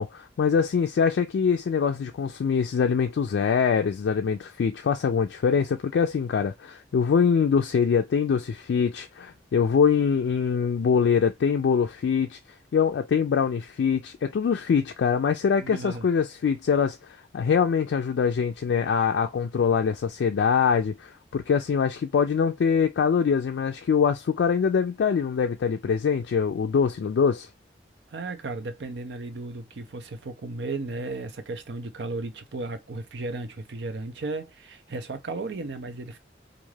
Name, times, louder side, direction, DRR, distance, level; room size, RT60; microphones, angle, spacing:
voice 1, 0.0-12.4 12.7-27.5, left 6 dB, 85° left, 0.3 m, -24 dB
voice 2, 15.6-16.1 28.1-36.2, right 3 dB, 80° right, 0.5 m, -35 dB
2.5 x 2.4 x 3.1 m
head